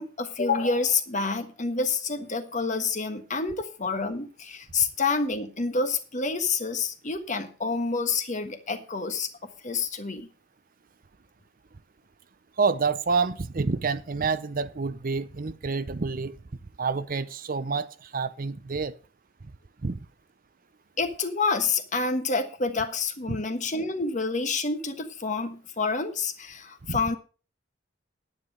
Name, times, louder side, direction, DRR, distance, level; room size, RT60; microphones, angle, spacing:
voice 1, 0.0-10.3 21.0-27.2, left 4 dB, 35° left, 1.4 m, -28 dB
voice 2, 12.6-16.4 16.8-19.0 19.8-20.0 23.3-23.4 26.9-27.0, right 4 dB, 45° right, 0.6 m, -28 dB
10.0 x 9.7 x 5.4 m
head